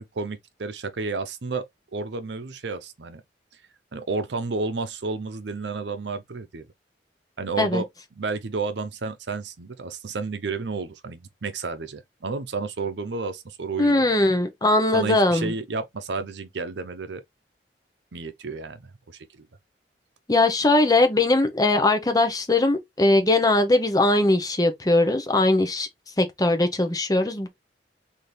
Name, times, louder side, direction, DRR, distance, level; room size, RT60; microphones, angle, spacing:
voice 1, 0.0-1.7 1.9-3.2 3.9-6.7 7.4-7.9 8.2-14.3 14.9-17.2 18.1-19.5, right 4 dB, 80° right, 0.7 m, -31 dB
voice 2, 13.8-15.5 20.3-25.9 26.2-27.5, left 2 dB, 20° left, 0.8 m, -20 dB
4.2 x 2.8 x 3.2 m
head